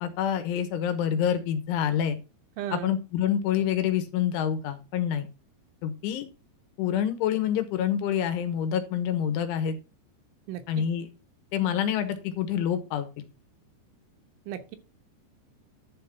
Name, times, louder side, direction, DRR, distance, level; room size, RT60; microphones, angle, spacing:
voice 1, 0.0-2.2 2.7-5.3 5.8-6.3 6.8-9.8 10.7-11.1 11.5-13.2, left 9 dB, 85° left, 9 dB, 3.6 m, -27 dB
voice 2, 2.6-2.9 10.5-10.8 14.5-14.8, right 11 dB, 85° right, 7 dB, 3.5 m, -35 dB
11.0 x 3.8 x 5.8 m, 0.30 s
omnidirectional pair, 5.4 m